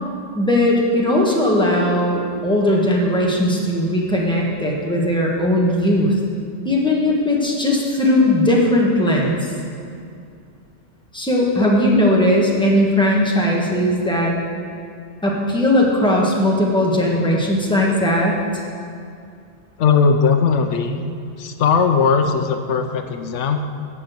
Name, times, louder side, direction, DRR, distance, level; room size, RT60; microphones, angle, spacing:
voice 1, 0.3-6.1 6.6-9.5 11.1-14.3 15.2-18.4, left 1 dB, 5° left, -3 dB, 1.5 m, -18 dB
voice 2, 19.8-21.0 21.4-23.6, left 5 dB, 80° left, 7 dB, 1.0 m, -18 dB
13.5 x 4.4 x 8.0 m, 2.4 s
omnidirectional pair, 1.2 m